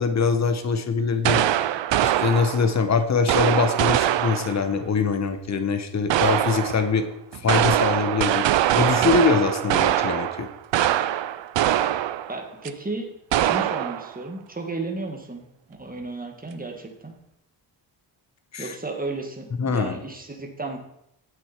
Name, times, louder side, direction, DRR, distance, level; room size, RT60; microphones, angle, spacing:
voice 1, 0.0-1.4 2.0-7.1 7.3-8.5 8.7-10.5 18.5-18.7 19.6-20.0, left 5 dB, 40° left, 9 dB, 1.0 m, -23 dB
sound 1, 1.2-2.8 3.3-4.7 6.1-6.9 7.3-12.4 12.7-12.8 13.3-14.1, right 12 dB, 75° right, 0.6 m, -23 dB
voice 2, 12.3-17.1 18.6-20.8, right 3 dB, 20° right, 3 dB, 1.9 m, -34 dB
9.9 x 8.1 x 4.5 m, 0.77 s
cardioid pair, 95°, 44 cm